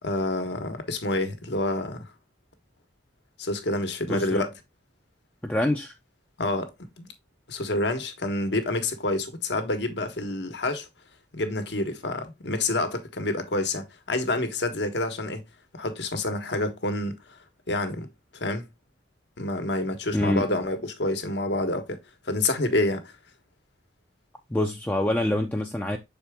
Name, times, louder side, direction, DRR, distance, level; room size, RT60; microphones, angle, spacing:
voice 1, 0.0-2.1 3.4-4.5 6.4-7.1 7.5-10.9 11.3-15.4 15.7-17.2 17.7-18.1 18.3-18.7 19.4-23.1, left 2 dB, 70° left, 1.2 m, -28 dB
voice 2, 4.1-4.5 5.4-5.9 20.1-20.5 24.5-26.0, left 1 dB, 10° left, 0.5 m, -25 dB
6.7 x 4.4 x 3.5 m
head